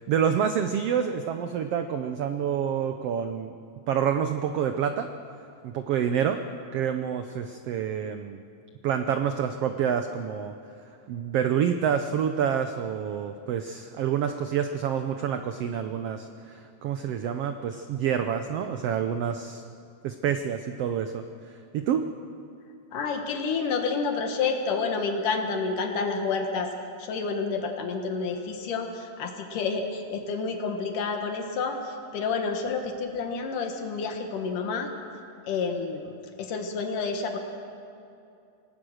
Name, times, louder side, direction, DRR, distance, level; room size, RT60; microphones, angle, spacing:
voice 1, 0.0-3.6 3.9-5.1 5.6-6.4 6.7-8.4 8.8-10.5 11.1-19.6 20.0-21.2 21.7-22.0, right 8 dB, 80° right, 8 dB, 1.4 m, -27 dB
voice 2, 22.9-26.7 27.0-34.9 35.5-37.4, left 4 dB, 80° left, 4 dB, 2.9 m, -29 dB
27.0 x 18.5 x 6.5 m, 2.6 s
omnidirectional pair, 3.7 m